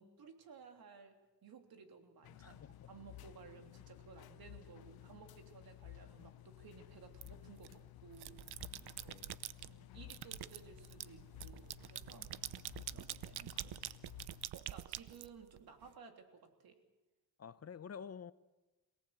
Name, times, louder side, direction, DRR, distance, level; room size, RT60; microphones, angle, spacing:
voice 1, 0.0-9.2 9.6-12.3 12.9-14.0 14.5-16.8, right 5 dB, 70° right, 3.4 m, -57 dB
sound 1, 2.2-14.5, left 15 dB, 70° left, 0.7 m, -55 dB
voice 2, 2.3-2.9 8.7-9.4 17.4-18.3, left 7 dB, 40° left, 0.8 m, -50 dB
sound 2, 7.2-7.7 8.1-9.7 10.1-15.9, right 13 dB, 85° right, 0.8 m, -46 dB
27.0 x 18.0 x 8.3 m
cardioid pair, 100°, 38 cm